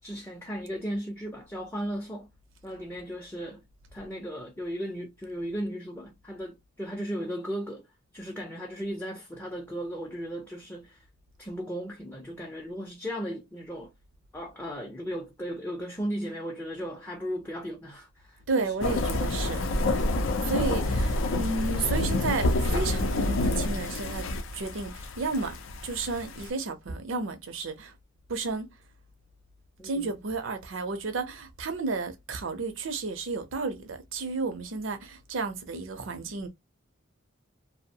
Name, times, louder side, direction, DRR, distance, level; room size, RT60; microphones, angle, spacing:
voice 1, 0.0-2.3 2.6-3.6 3.9-7.9 8.1-11.0 11.4-13.9 14.3-18.6 29.8-30.1, equal, 10° left, 0.4 m, -36 dB
voice 2, 18.5-20.0 20.4-24.3 24.5-25.6 25.8-27.9 28.3-28.7 29.8-36.5, right 3 dB, 85° right, 0.6 m, -32 dB
sound 1, 18.8-26.5, left 2 dB, 85° left, 0.5 m, -28 dB
2.6 x 2.0 x 2.7 m
head